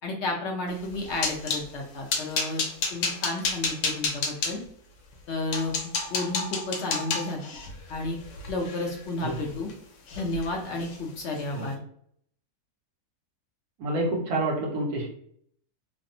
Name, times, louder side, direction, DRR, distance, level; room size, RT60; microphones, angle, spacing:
voice 1, 0.0-2.6 2.9-4.6 5.3-7.5 7.9-8.2 8.5-9.7 10.1-11.7, left 2 dB, 65° left, 0 dB, 0.7 m, -32 dB
sound 1, 0.8-1.7 2.1-4.5 5.1-5.2 5.5-9.7 10.1-10.5 10.7-11.0 11.4-11.5, left 4 dB, 85° left, 1.1 m, -30 dB
voice 2, 13.8-15.1, right 2 dB, 85° right, -1 dB, 1.3 m, -28 dB
3.2 x 2.0 x 2.6 m, 0.65 s
omnidirectional pair, 1.6 m